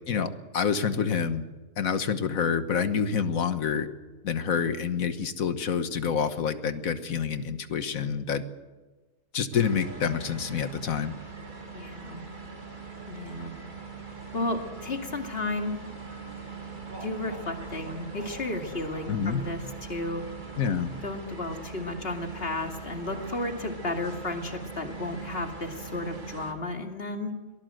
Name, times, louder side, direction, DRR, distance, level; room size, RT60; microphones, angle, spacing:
voice 1, 0.1-1.4 1.8-3.9 4.2-8.4 9.3-11.1 19.1-19.4 20.6-20.9, left 6 dB, 85° left, 11 dB, 1.6 m, -27 dB
sound 1, 9.5-26.5, right 4 dB, 35° right, 2.7 m, -41 dB
voice 2, 11.7-12.2 13.1-13.5 14.3-15.8 17.0-20.2 21.0-27.4, left 2 dB, 45° left, 4 dB, 2.7 m, -33 dB
23.0 x 18.5 x 7.8 m, 1.2 s
omnidirectional pair, 1.4 m